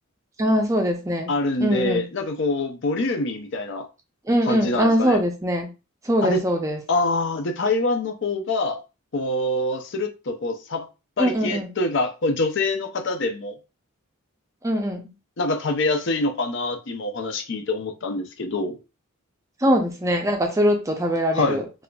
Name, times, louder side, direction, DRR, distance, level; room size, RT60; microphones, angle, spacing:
voice 1, 0.4-1.3 1.6-2.1 4.3-5.7 6.0-6.8 11.2-11.7 14.6-15.1 19.6-21.6, equal, 15° right, 0.5 m, -22 dB
voice 2, 1.3-3.9 4.5-5.2 6.2-6.4 6.9-8.8 9.1-10.9 11.2-13.5 15.4-18.8 21.3-21.6, left 2 dB, 55° left, 0.5 m, -25 dB
4.1 x 2.4 x 2.3 m
head